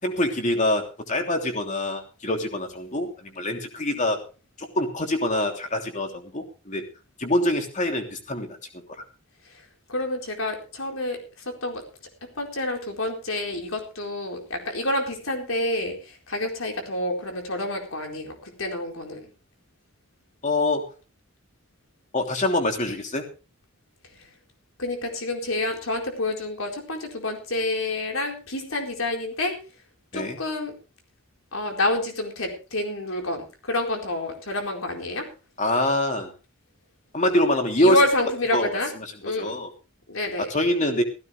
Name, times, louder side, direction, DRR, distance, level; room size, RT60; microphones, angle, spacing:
voice 1, 0.0-4.2 4.6-6.8 7.2-8.6 20.4-20.9 22.1-23.2 30.1-30.4 35.6-36.3 37.1-38.0 38.5-38.7 39.4-39.7 40.5-41.0, left 1 dB, 35° left, 4 dB, 3.1 m, -24 dB
voice 2, 9.5-11.8 12.4-19.3 24.2-24.3 24.8-29.6 30.1-30.7 31.5-35.3 37.8-38.9 39.2-39.6 40.1-40.5, left 1 dB, 90° left, 2 dB, 4.3 m, -28 dB
16.0 x 15.5 x 3.3 m, 0.33 s
head